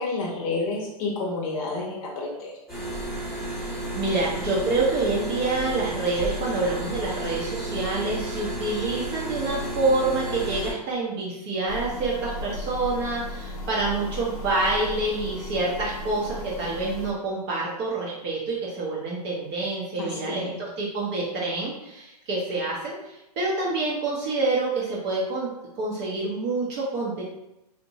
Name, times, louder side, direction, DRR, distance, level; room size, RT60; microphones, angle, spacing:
voice 1, 0.0-2.5 20.0-20.5, left 3 dB, 35° left, -2 dB, 0.7 m, -30 dB
sound 1, 2.7-10.7, right 1 dB, ahead, 0.8 m, -32 dB
voice 2, 3.9-25.5 25.8-27.2, right 3 dB, 30° right, -5 dB, 0.6 m, -27 dB
sound 2, 11.7-17.1, left 1 dB, 65° left, 0.7 m, -36 dB
2.8 x 2.1 x 2.7 m, 0.88 s
hypercardioid pair, 135°, 21 cm